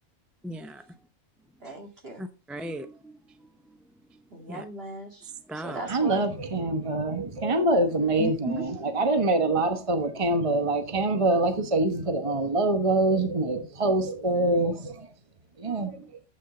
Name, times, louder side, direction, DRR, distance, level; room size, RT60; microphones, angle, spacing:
voice 1, 0.4-0.8 2.2-3.1 4.5-4.6 5.5-5.8 8.2-8.6 15.7-16.1, right 1 dB, ahead, 0.5 m, -36 dB
voice 2, 1.6-2.2 4.3-6.3, right 1 dB, 50° right, 2.6 m, -39 dB
voice 3, 5.9-15.1 15.6-16.0, right 2 dB, 25° right, 1.2 m, -25 dB
10.0 x 8.5 x 3.8 m
omnidirectional pair, 1.3 m